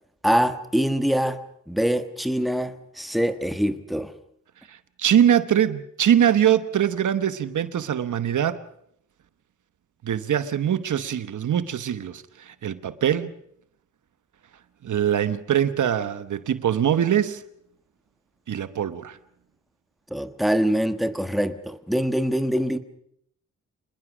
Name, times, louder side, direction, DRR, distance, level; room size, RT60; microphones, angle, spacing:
voice 1, 0.2-1.4 1.7-4.1 20.1-22.8, equal, ahead, 1.4 m, -24 dB
voice 2, 5.0-8.6 10.0-13.3 14.8-17.4 18.5-19.2, right 9 dB, 70° right, 1.1 m, -22 dB
26.5 x 20.5 x 6.2 m
wide cardioid pair, 105°, 31 cm